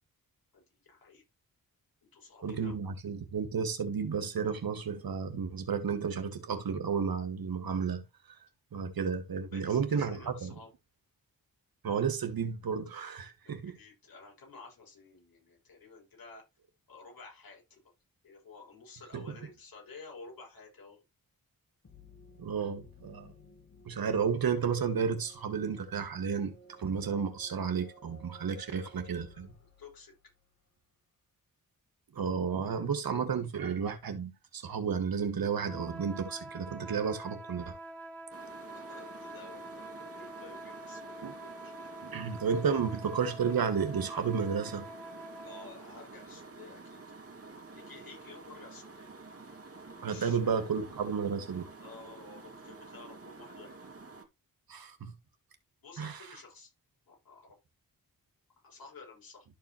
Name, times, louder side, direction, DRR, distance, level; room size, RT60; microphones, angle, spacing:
voice 1, 0.5-1.2 2.1-2.8 9.5-10.7 13.4-16.4 16.9-17.8 18.2-21.0 28.7-28.9 29.3-30.1 38.6-41.7 42.0-42.1 42.7-42.8 45.4-47.0 47.7-49.1 50.0-50.5 51.8-53.8 55.8-56.7 57.1-57.5 58.6-59.5, left 4 dB, 75° left, 6.3 m, -52 dB
voice 2, 2.4-8.0 8.7-10.6 11.8-13.8 19.1-19.4 22.4-23.3 23.9-29.5 32.1-37.8 41.2-41.3 42.0-44.9 50.0-51.7 54.7-55.1 56.0-56.2, right 6 dB, 75° right, 1.9 m, -32 dB
sound 1, 21.8-30.5, equal, 50° left, 3.2 m, -57 dB
sound 2, 35.6-45.8, right 1 dB, 5° left, 2.1 m, -46 dB
sound 3, 38.3-54.2, right 3 dB, 40° right, 2.2 m, -50 dB
13.0 x 4.8 x 3.0 m
cardioid pair, 75°, 36 cm